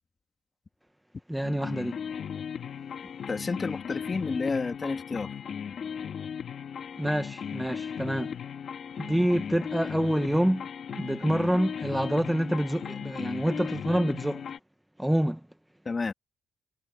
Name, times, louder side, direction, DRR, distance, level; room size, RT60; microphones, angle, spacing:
voice 1, 1.3-2.0 7.0-8.4 9.0-10.7 10.9-14.5 15.0-15.4, right 1 dB, 5° right, 1.3 m, -27 dB
sound 1, 1.4-14.6, left 7 dB, 55° left, 2.3 m, -37 dB
voice 2, 3.3-5.3 15.8-16.1, left 4 dB, 30° left, 3.0 m, -30 dB
cardioid pair, 90°, 0 cm